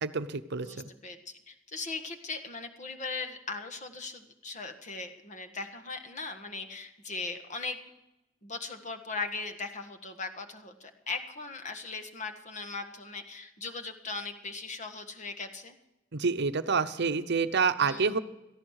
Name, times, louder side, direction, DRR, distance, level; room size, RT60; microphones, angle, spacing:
voice 1, 0.0-0.8 16.1-18.2, right 5 dB, 60° right, 11 dB, 0.8 m, -28 dB
voice 2, 0.6-7.9 8.4-15.7 17.8-18.1, left 3 dB, 40° left, 7 dB, 1.5 m, -39 dB
17.5 x 14.0 x 4.8 m, 0.94 s
head